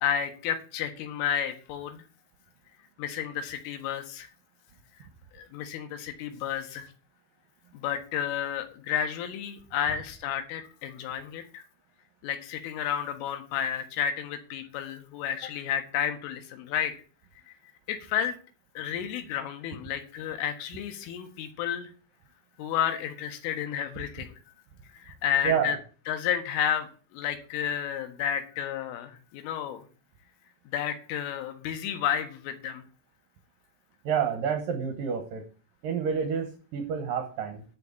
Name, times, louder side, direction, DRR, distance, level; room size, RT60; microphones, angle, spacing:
voice 1, 0.0-2.0 3.0-4.3 5.3-6.9 7.7-11.6 12.2-16.9 17.5-17.6 17.9-18.4 18.8-21.9 22.6-24.4 24.9-25.8 26.1-29.9 30.7-32.8, left 9 dB, 85° left, 7 dB, 4.0 m, -31 dB
voice 2, 34.1-35.4 35.8-37.6, right 7 dB, 70° right, 6 dB, 2.2 m, -29 dB
11.5 x 5.4 x 8.3 m, 0.39 s
omnidirectional pair, 5.6 m